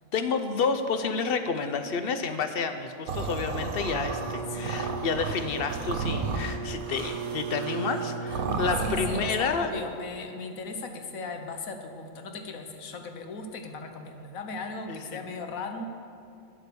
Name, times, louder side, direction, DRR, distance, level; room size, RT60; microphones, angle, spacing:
voice 1, 0.1-9.7 14.9-15.2, left 5 dB, 55° left, 8 dB, 0.8 m, -30 dB
sound 1, 3.1-9.4, right 4 dB, 90° right, 1.4 m, -33 dB
Bowed string instrument, 3.7-9.2, right 6 dB, 65° right, 0.4 m, -37 dB
voice 2, 4.5-4.9 8.8-15.8, left 3 dB, 80° left, 5 dB, 1.4 m, -37 dB
9.2 x 8.6 x 6.9 m, 2.4 s
omnidirectional pair, 1.4 m